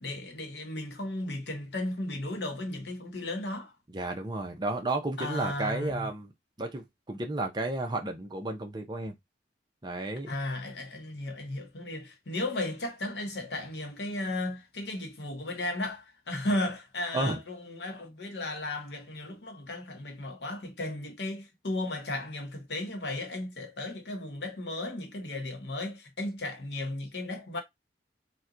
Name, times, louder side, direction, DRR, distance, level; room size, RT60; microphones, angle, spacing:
voice 1, 0.0-3.7 5.2-6.1 10.3-27.6, left 2 dB, 70° left, 1.0 m, -35 dB
voice 2, 3.9-6.3 6.6-9.1 9.8-10.3 17.1-17.4, right 2 dB, 25° right, 0.6 m, -32 dB
2.8 x 2.2 x 3.7 m
head